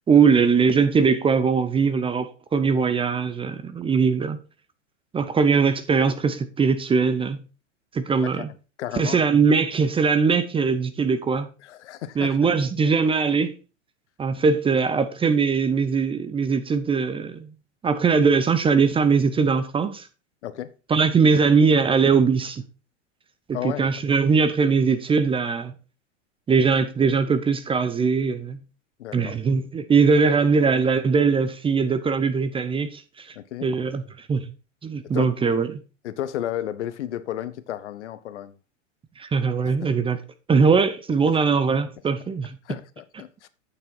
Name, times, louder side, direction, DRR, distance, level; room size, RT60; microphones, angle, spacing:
voice 1, 0.1-4.4 5.1-7.4 7.9-8.5 9.0-11.5 12.2-13.5 14.2-17.5 17.8-20.1 20.9-22.6 23.5-25.7 26.5-28.6 29.1-33.4 33.6-34.5 34.8-35.7 39.2-40.2 40.5-42.6, right 5 dB, 15° right, 0.7 m, -21 dB
voice 2, 8.8-9.2 11.6-12.4 20.4-20.7 23.5-24.0 29.0-29.4 33.3-33.7 35.1-35.3 36.0-38.5 39.6-39.8 41.2-41.3 42.6-43.5, left 11 dB, 65° left, 0.9 m, -33 dB
8.7 x 6.9 x 4.5 m
hypercardioid pair, 95°, 38 cm